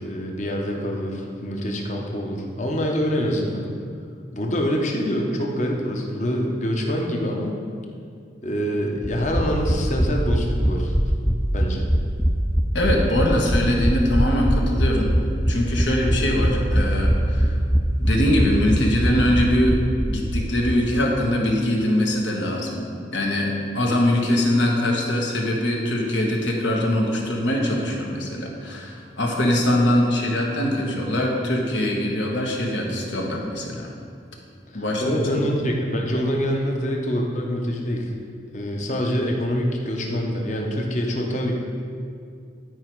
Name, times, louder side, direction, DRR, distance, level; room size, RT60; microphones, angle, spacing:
voice 1, 0.0-3.7 4.3-7.6 8.4-10.9 11.5-11.9 34.7-38.1 38.5-41.5, equal, 40° left, 1 dB, 0.8 m, -25 dB
sound 1, 9.0-20.8 21.0-21.1 21.4-21.5, equal, ahead, 0.4 m, -22 dB
voice 2, 12.7-15.1 15.5-17.5 18.0-33.9 34.7-35.5, left 1 dB, 80° left, 0 dB, 1.3 m, -22 dB
10.5 x 4.8 x 4.6 m, 2.3 s
head